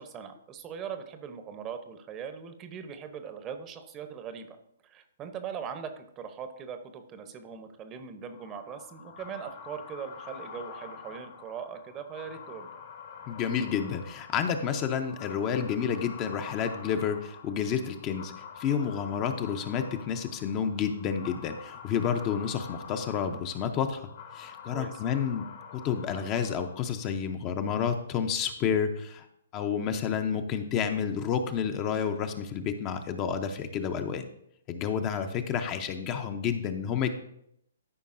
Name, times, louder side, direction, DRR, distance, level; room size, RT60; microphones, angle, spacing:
voice 1, 0.0-4.6 4.8-12.7 24.7-25.0 30.8-31.0, right 7 dB, 25° right, 8 dB, 0.8 m, -40 dB
sound 1, 8.3-27.2, left 7 dB, 50° left, 1.2 m, -47 dB
voice 2, 13.3-24.1 24.3-29.3 29.5-34.3 34.7-37.1, left 7 dB, 30° left, 7 dB, 0.6 m, -30 dB
13.5 x 5.2 x 2.6 m, 0.75 s
figure-of-eight pair, 130°, 0 cm